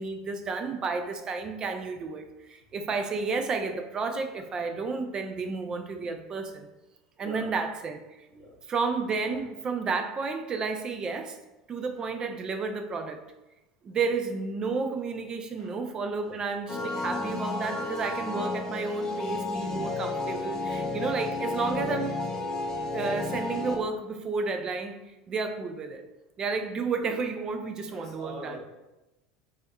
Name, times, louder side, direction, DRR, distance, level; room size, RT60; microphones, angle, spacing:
voice 1, 0.0-6.7 7.2-8.0 8.7-11.4 11.7-13.2 13.8-22.2 22.9-25.0 25.3-26.0 26.4-28.6, right 4 dB, 35° right, 6 dB, 0.4 m, -31 dB
voice 2, 7.2-7.5 8.3-8.6 9.3-9.5 11.9-12.0 15.6-15.8 16.2-16.6 27.9-28.6, right 1 dB, 75° right, -10 dB, 1.4 m, -44 dB
sound 1, 16.7-23.8, left 3 dB, 25° left, 0.5 m, -32 dB
3.4 x 2.6 x 2.2 m, 0.98 s
hypercardioid pair, 75°, 2 cm